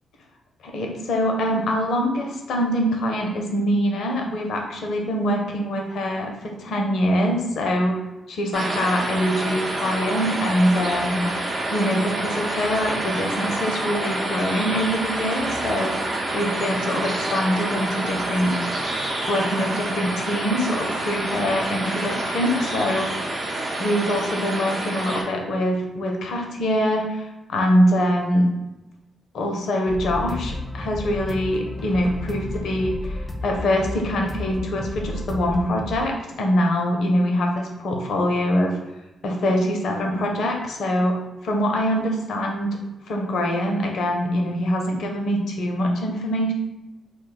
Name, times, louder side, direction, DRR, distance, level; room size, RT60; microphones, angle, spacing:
voice 1, 0.6-6.3 6.6-8.0 8.3-11.2 11.7-18.6 19.3-23.1 23.8-28.5 29.3-38.8 39.2-41.2 41.4-42.8 43.1-46.5, equal, 70° left, 1 dB, 0.5 m, -24 dB
sound 1, 8.5-25.2, right 2 dB, 50° right, 0.7 m, -27 dB
sound 2, 29.9-36.0, left 1 dB, 15° left, 0.5 m, -32 dB
2.2 x 2.1 x 3.9 m, 0.99 s
hypercardioid pair, 40°, 0 cm